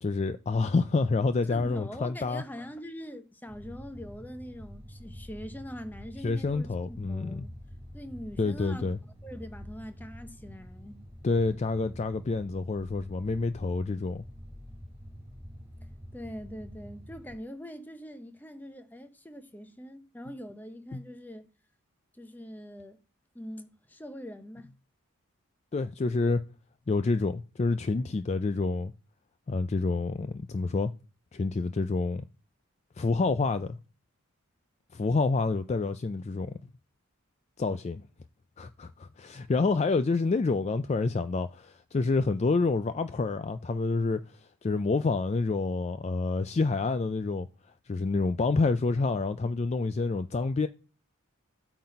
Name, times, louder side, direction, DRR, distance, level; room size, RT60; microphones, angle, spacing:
voice 1, 0.0-2.4 6.2-7.5 8.4-9.0 11.2-14.2 20.9-21.0 25.7-26.4 26.9-28.9 29.5-30.9 31.3-32.3 33.0-33.8 34.9-36.6 37.6-38.0 38.6-47.5 47.9-50.7, left 3 dB, 30° left, 0.3 m, -28 dB
voice 2, 1.4-7.5 7.9-8.9 9.2-11.0 15.8-21.5 22.1-23.0 23.3-24.7, equal, 10° left, 0.8 m, -43 dB
sound 1, 3.5-17.4, equal, 15° right, 3.3 m, -47 dB
8.5 x 4.0 x 5.2 m
head